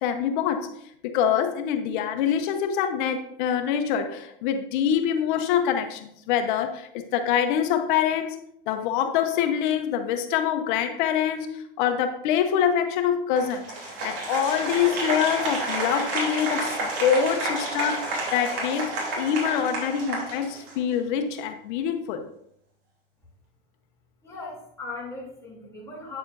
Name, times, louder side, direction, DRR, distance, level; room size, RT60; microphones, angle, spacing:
voice 1, 0.0-0.7 1.0-8.4 8.7-22.2, left 8 dB, 60° left, 7 dB, 0.9 m, -25 dB
Applause, 13.4-20.9, right 2 dB, 40° right, 3.0 m, -30 dB
voice 2, 24.2-26.2, left 3 dB, 10° left, -5 dB, 2.9 m, -38 dB
8.7 x 6.7 x 2.6 m, 0.69 s
supercardioid pair, 130°, 29 cm